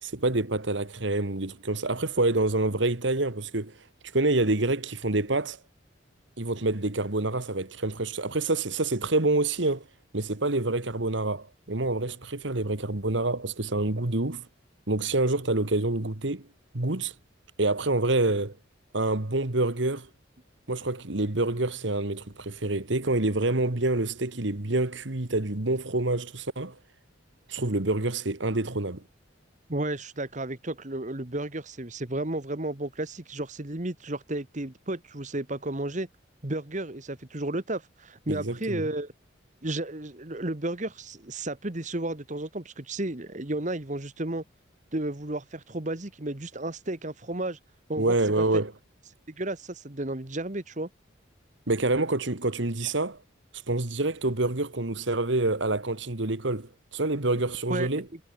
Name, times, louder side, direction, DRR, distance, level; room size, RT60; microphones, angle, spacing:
voice 1, 0.0-3.7 4.1-5.6 6.4-9.8 10.1-14.4 14.9-16.5 16.7-17.1 17.6-18.6 18.9-20.1 20.7-26.8 27.5-29.0 38.3-38.8 48.0-48.7 51.7-53.2 53.7-58.1, right 2 dB, 65° right, 1.8 m, -27 dB
voice 2, 29.7-36.1 36.4-39.1 39.6-44.4 44.9-47.6 47.9-48.4 49.3-50.9 57.7-57.9, right 2 dB, 40° right, 1.6 m, -33 dB
head